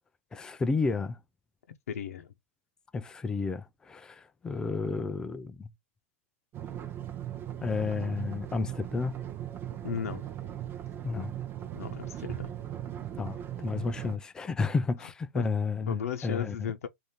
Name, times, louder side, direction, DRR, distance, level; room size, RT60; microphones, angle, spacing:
voice 1, 0.3-1.2 2.9-5.7 7.6-9.2 11.0-11.3 13.2-16.7, left 4 dB, 10° left, 0.3 m, -31 dB
voice 2, 1.9-2.3 9.8-10.3 11.7-12.5 15.3-15.4 15.9-16.9, left 8 dB, 75° left, 0.7 m, -35 dB
sound 1, 6.5-14.2, right 11 dB, 25° right, 0.7 m, -38 dB
3.4 x 2.6 x 4.2 m
hypercardioid pair, 140°, 8 cm